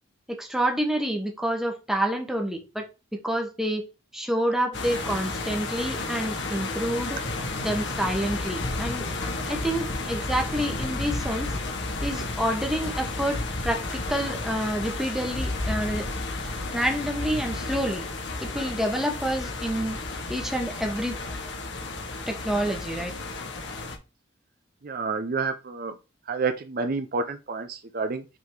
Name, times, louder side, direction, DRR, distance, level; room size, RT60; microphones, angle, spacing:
voice 1, 0.3-2.9 3.1-3.8 4.1-7.2 7.6-9.1 9.5-11.5 12.0-16.1 16.7-18.0 18.4-20.0 20.3-21.1 22.3-23.1, right 1 dB, ahead, 2 dB, 1.2 m, -28 dB
sound 1, 4.7-24.0, left 2 dB, 65° left, 1.2 m, -32 dB
voice 2, 24.8-26.0 26.3-28.2, right 4 dB, 50° right, 8 dB, 0.6 m, -29 dB
5.8 x 3.7 x 4.7 m, 0.28 s
head